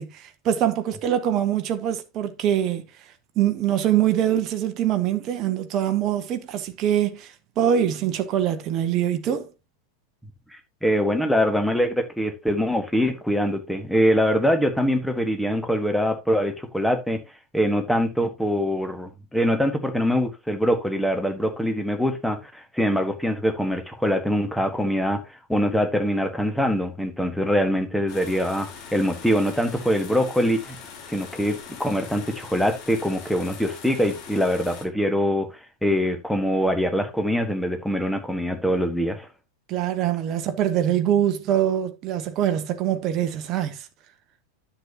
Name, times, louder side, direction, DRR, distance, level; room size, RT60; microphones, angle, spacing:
voice 1, 0.0-2.8 3.4-9.5 39.7-43.9, right 10 dB, 35° right, 1.0 m, -24 dB
voice 2, 10.5-17.2 17.5-30.8 31.1-39.3, equal, ahead, 1.5 m, -23 dB
sound 1, 28.1-34.8, left 6 dB, 40° left, 2.0 m, -42 dB
10.0 x 7.1 x 2.9 m
figure-of-eight pair, 90°, 0 cm